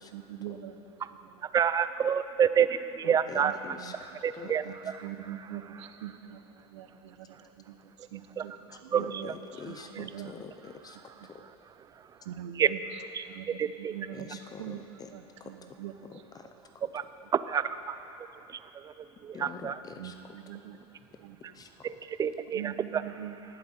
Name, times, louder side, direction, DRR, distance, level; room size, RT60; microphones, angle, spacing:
voice 1, 0.1-1.4 3.0-4.0 4.4-10.5 11.2-11.3 12.2-16.2 16.5-16.6 19.9-20.8 21.2-21.4 22.5-23.3, right 10 dB, 85° right, 8 dB, 0.9 m, -43 dB
voice 2, 1.5-3.6 4.2-4.6 8.9-9.0 12.6-12.7 13.6-13.9 16.9-17.0 17.5-18.0 19.2-19.7 21.8-21.9 22.2-22.6, right 8 dB, 25° right, 13 dB, 0.4 m, -27 dB
voice 3, 3.0-4.5 9.0-11.0 11.3-11.4 14.1-15.1 15.4-15.5 16.1-16.5 16.8-16.9 19.3-20.1 21.5-21.9, left 5 dB, 25° left, 7 dB, 0.6 m, -45 dB
18.5 x 7.6 x 4.4 m, 3.0 s
supercardioid pair, 110°, 15 cm